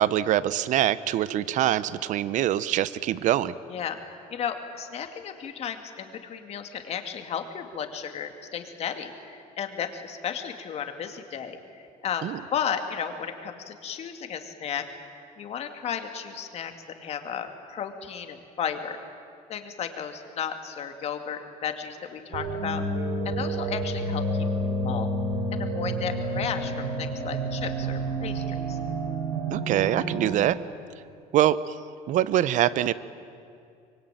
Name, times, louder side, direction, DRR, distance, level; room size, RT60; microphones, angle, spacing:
voice 1, 0.0-3.5 12.2-12.4 29.5-30.6 31.3-31.7 32.1-32.9, right 12 dB, 55° right, 17 dB, 0.9 m, -24 dB
voice 2, 4.3-14.9 15.4-16.7 17.0-19.0 19.5-22.8 23.2-24.5 24.8-25.1 25.5-28.8, left 8 dB, 45° left, 6 dB, 2.3 m, -34 dB
sound 1, 22.3-30.3, right 1 dB, 80° right, 5.0 m, -29 dB
25.0 x 23.0 x 9.1 m, 2.4 s
cardioid pair, 150°, 15 cm